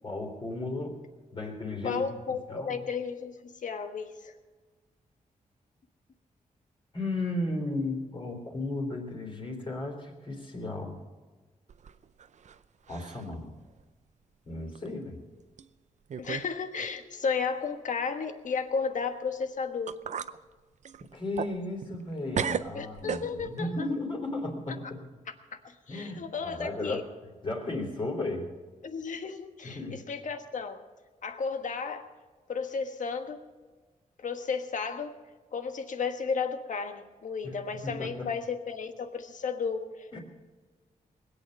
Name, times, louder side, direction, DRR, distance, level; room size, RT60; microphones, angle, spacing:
voice 1, 0.0-1.0 1.3-2.0 2.5-2.8 6.9-11.0 12.9-13.5 14.5-15.2 21.0-25.0 25.9-27.1 27.4-28.5 29.6-30.0 37.4-38.3 40.1-40.2, left 2 dB, 35° left, 0 dB, 3.5 m, -35 dB
voice 2, 1.8-4.3 16.2-20.0 22.7-23.9 25.6-27.0 28.8-30.8 31.2-32.0 32.5-33.4 34.2-35.1 35.5-40.2, left 5 dB, 65° left, 7 dB, 1.4 m, -33 dB
sound 1, 11.7-12.6 12.9-13.3 13.8-13.9 14.7-14.9 15.6-15.7 16.1-16.5 16.8-16.9 19.4-19.5 19.9-20.4 20.8-22.1 22.3-23.6, right 7 dB, 55° right, 0.5 m, -35 dB
21.0 x 8.7 x 6.5 m, 1.3 s
wide cardioid pair, 110°, 14 cm